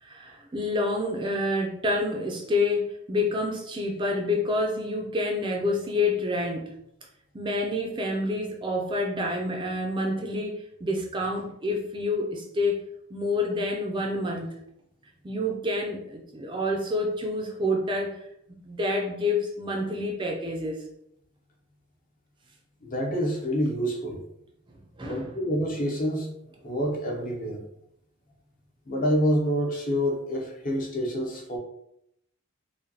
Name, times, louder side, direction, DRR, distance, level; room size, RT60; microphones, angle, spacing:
voice 1, 0.0-6.7 7.3-12.8 13.1-14.6 15.2-20.8 24.7-25.3, left 2 dB, 20° right, 1 dB, 0.4 m, -28 dB
voice 2, 22.8-24.2 25.0-26.3 26.6-27.6 28.9-31.6, equal, 35° left, 1 dB, 0.6 m, -27 dB
5.0 x 2.2 x 2.7 m, 0.76 s
head